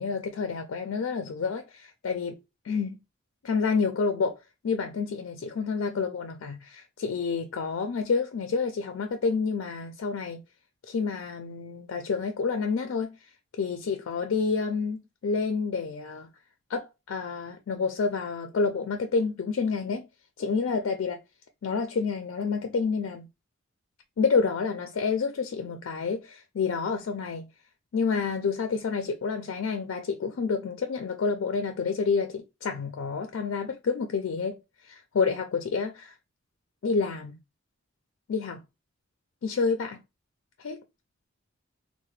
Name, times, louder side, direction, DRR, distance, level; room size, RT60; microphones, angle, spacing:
voice 1, 0.0-2.4 2.6-3.0 3.4-4.4 4.6-10.4 10.9-13.2 13.6-16.3 16.7-20.1 20.4-21.2 21.6-23.3 24.2-27.5 27.9-36.1 36.8-37.4 38.3-38.6 39.4-40.0 40.6-40.8, left 5 dB, 70° left, 0.4 m, -29 dB
3.2 x 2.1 x 3.1 m
head